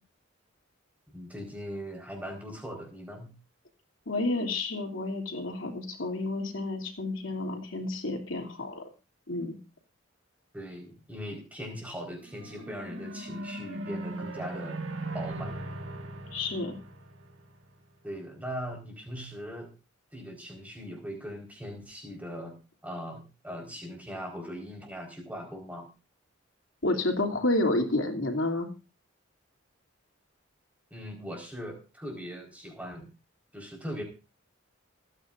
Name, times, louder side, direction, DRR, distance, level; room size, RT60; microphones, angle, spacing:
voice 1, 1.1-3.3 10.5-14.8 15.1-15.5 18.0-19.7 20.1-25.9 30.9-33.1 33.5-34.0, equal, 5° right, 1 dB, 4.7 m, -40 dB
voice 2, 4.1-8.8 9.3-9.6 16.3-16.8 26.8-28.7, left 2 dB, 75° left, 3 dB, 3.0 m, -30 dB
sound 1, 12.2-17.8, right 2 dB, 70° right, 2.2 m, -39 dB
28.0 x 9.7 x 2.6 m, 0.30 s
head